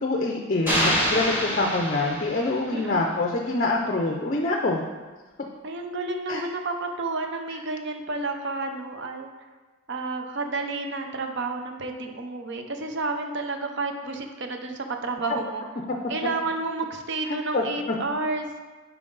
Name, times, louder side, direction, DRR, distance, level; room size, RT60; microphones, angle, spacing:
voice 1, 0.0-4.8 6.3-6.4 15.3-15.4 17.3-18.0, left 2 dB, 35° left, 1 dB, 0.5 m, -25 dB
sound 1, 0.7-2.8, equal, 10° right, 1.6 m, -26 dB
voice 2, 2.7-3.0 5.6-9.3 9.9-15.7 16.1-18.5, right 3 dB, 55° right, 5 dB, 0.6 m, -30 dB
7.2 x 4.6 x 3.9 m, 1.3 s
head